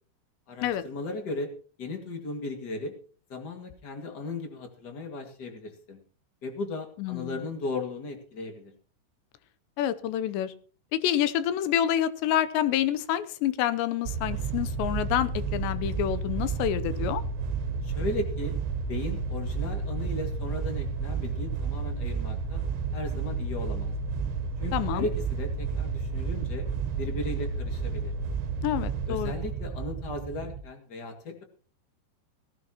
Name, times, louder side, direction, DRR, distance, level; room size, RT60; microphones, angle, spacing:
voice 1, 0.5-1.5 1.8-2.9 3.3-6.0 6.4-8.7 17.8-18.5 18.9-22.6 22.9-23.9 24.6-26.7 27.0-28.1 29.1-31.4, left 3 dB, 40° left, 4 dB, 1.4 m, -36 dB
voice 2, 7.0-7.4 9.8-10.5 10.9-17.2 24.7-25.1 28.6-29.3, left 11 dB, 80° left, 14 dB, 3.0 m, -28 dB
sound 1, 14.1-30.6, right 5 dB, 80° right, 3.1 m, -31 dB
18.0 x 14.5 x 2.9 m, 0.41 s
omnidirectional pair, 5.1 m